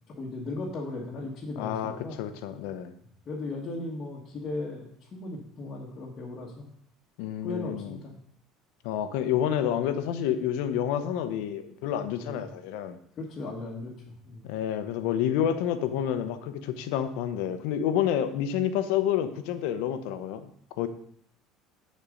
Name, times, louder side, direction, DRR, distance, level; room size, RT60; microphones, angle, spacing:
voice 1, 0.1-2.2 3.3-6.7 7.4-8.1 12.2-12.4 13.2-13.9 14.2-14.4, left 2 dB, 35° left, -5 dB, 1.5 m, -37 dB
voice 2, 1.6-2.9 7.2-8.0 8.8-13.0 14.4-20.5 20.8-20.9, left 10 dB, 80° left, 10 dB, 0.8 m, -29 dB
10.0 x 4.4 x 5.2 m, 0.66 s
cardioid pair, 135°, 0 cm